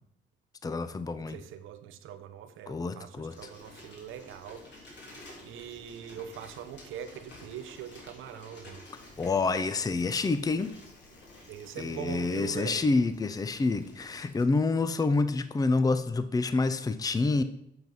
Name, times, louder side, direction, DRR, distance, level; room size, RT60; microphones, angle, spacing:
voice 1, 0.6-1.4 2.7-3.5 9.2-10.7 11.8-17.4, left 3 dB, 20° left, 12 dB, 0.5 m, -28 dB
voice 2, 1.1-4.7 5.1-5.2 5.4-8.8 11.5-12.9, right 9 dB, 85° right, 9 dB, 0.9 m, -42 dB
Bicycle, 3.3-14.4, left 1 dB, 60° left, 3.2 m, -51 dB
8.0 x 6.2 x 5.3 m, 0.76 s
cardioid pair, 90°, 20 cm